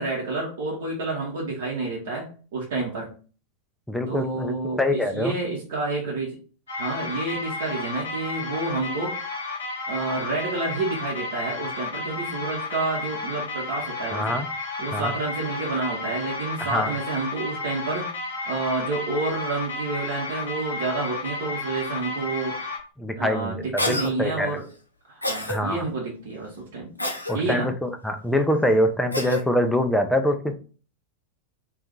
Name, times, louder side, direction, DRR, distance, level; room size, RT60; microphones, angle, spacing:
voice 1, 0.0-3.1 4.1-6.4 6.8-9.2 9.9-14.4 14.8-18.1 18.5-22.6 23.2-24.6 25.1-26.9 27.3-27.7, right 3 dB, 55° right, -3 dB, 0.8 m, -29 dB
voice 2, 3.9-5.3 14.1-14.5 14.9-15.1 16.6-16.9 23.0-24.5 25.5-25.8 27.3-30.5, left 1 dB, 5° left, 6 dB, 0.4 m, -24 dB
sound 1, 6.7-22.8, left 3 dB, 70° left, 0.8 m, -32 dB
Cough, 23.8-24.1 25.2-25.6 27.0-27.4 29.1-29.4, left 1 dB, 85° left, 0.5 m, -27 dB
2.6 x 2.4 x 3.7 m, 0.39 s
figure-of-eight pair, 90°, 0 cm